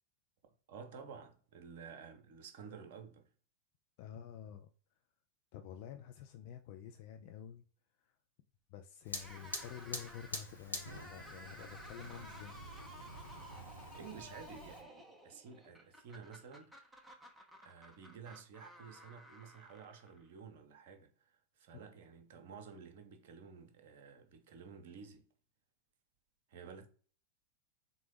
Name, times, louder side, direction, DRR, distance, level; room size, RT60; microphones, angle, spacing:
voice 1, 0.7-3.3 13.9-16.9 17.6-25.3 26.5-26.9, right 6 dB, 50° right, 0.6 m, -52 dB
voice 2, 4.0-4.7 5.5-7.6 8.0-8.1 8.7-12.6, left 9 dB, 45° left, 0.3 m, -49 dB
Fire, 9.1-14.8, left 1 dB, 80° left, 0.7 m, -47 dB
sound 1, 9.1-20.4, equal, 5° right, 0.6 m, -55 dB
3.9 x 2.1 x 3.2 m
figure-of-eight pair, 90°, 0 cm